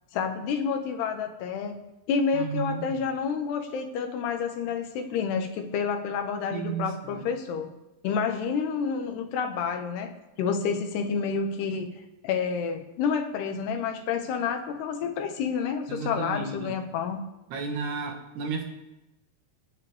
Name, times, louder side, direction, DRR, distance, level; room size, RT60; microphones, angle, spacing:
voice 1, 0.1-1.8 2.1-7.7 8.0-10.1 10.4-11.9 12.2-17.2, left 6 dB, 85° left, 5 dB, 3.4 m, -29 dB
voice 2, 2.3-3.0 6.5-7.3 15.9-16.8 17.5-18.6, right 5 dB, 80° right, 3 dB, 3.5 m, -33 dB
26.5 x 10.5 x 3.6 m, 0.96 s
omnidirectional pair, 4.6 m